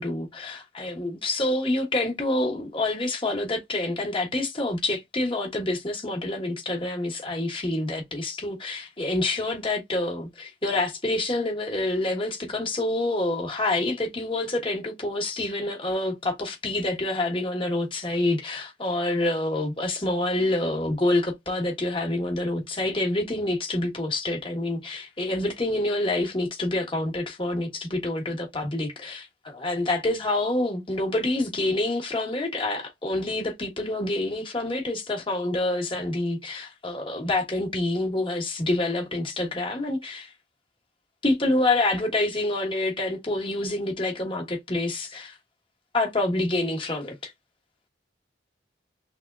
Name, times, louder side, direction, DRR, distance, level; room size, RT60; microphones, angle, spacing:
voice 1, 0.0-40.3 41.2-45.4 45.9-47.3, left 2 dB, 30° left, 1.2 m, -27 dB
3.5 x 3.4 x 2.3 m
head